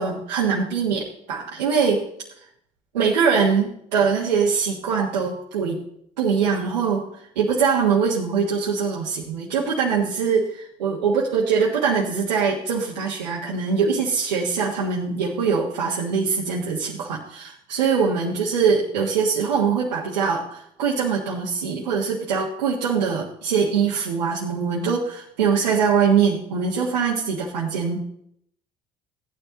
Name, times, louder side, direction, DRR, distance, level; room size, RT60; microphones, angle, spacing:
voice 1, 0.0-2.0 2.9-5.8 6.2-7.0 7.3-28.0, right 6 dB, 90° right, -4 dB, 1.5 m, -22 dB
15.0 x 9.6 x 3.9 m, 0.71 s
hypercardioid pair, 60°, 21 cm